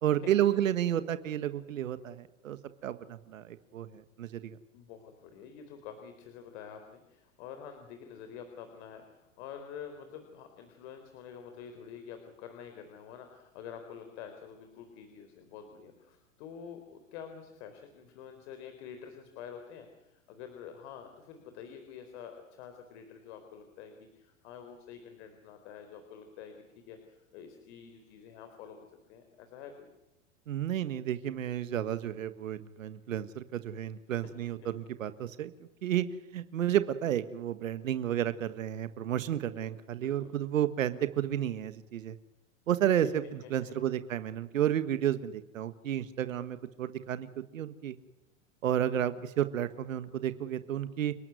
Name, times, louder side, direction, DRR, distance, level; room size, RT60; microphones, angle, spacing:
voice 1, 0.0-4.6 30.5-35.5 35.8-36.0 36.3-42.1 42.7-47.3 47.5-48.0 48.6-51.1, right 11 dB, 85° right, 12 dB, 1.6 m, -31 dB
voice 2, 4.7-29.9 34.6-34.7 39.4-39.7 39.9-40.3 43.4-43.7, left 7 dB, 60° left, 7 dB, 4.1 m, -48 dB
30.0 x 12.5 x 9.5 m, 0.96 s
hypercardioid pair, 120°, 39 cm